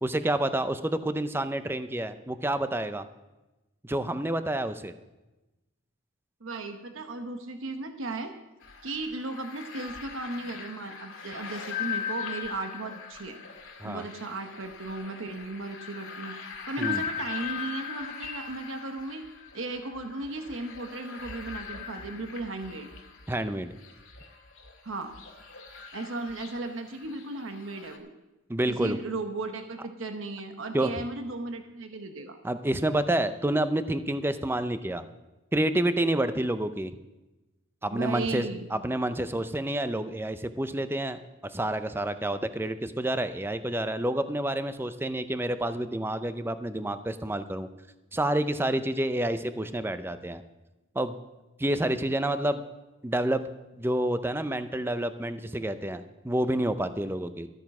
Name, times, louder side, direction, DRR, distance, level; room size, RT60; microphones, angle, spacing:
voice 1, 0.0-3.0 3.8-4.9 13.8-14.0 16.8-17.0 23.3-23.7 28.5-29.0 30.7-30.9 32.4-35.1 35.5-36.9 37.8-47.7 48.1-50.4 50.9-51.1 51.6-52.6 53.0-53.4 53.8-57.5, right 1 dB, 10° right, 11 dB, 0.5 m, -29 dB
voice 2, 6.4-8.3 8.8-13.4 13.8-19.3 19.5-22.9 24.8-25.1 25.9-28.1 28.7-32.4 37.9-38.7, right 3 dB, 70° right, 6 dB, 1.1 m, -36 dB
sound 1, 8.6-28.0, left 7 dB, 85° left, 1.8 m, -40 dB
13.0 x 9.1 x 5.9 m, 1.1 s
head